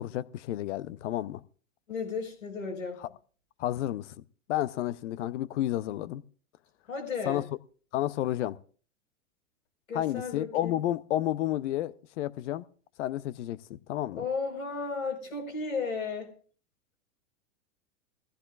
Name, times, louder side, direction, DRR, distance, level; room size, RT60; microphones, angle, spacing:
voice 1, 0.0-1.4 3.6-4.2 4.5-6.2 7.3-7.4 7.9-8.6 9.9-12.7 13.0-14.2, left 13 dB, 60° left, 0.8 m, -31 dB
voice 2, 1.9-3.0 6.9-7.4 9.9-10.7 14.1-16.3, left 4 dB, 85° left, 4.7 m, -34 dB
22.5 x 15.0 x 2.4 m
hypercardioid pair, 110°, 40 cm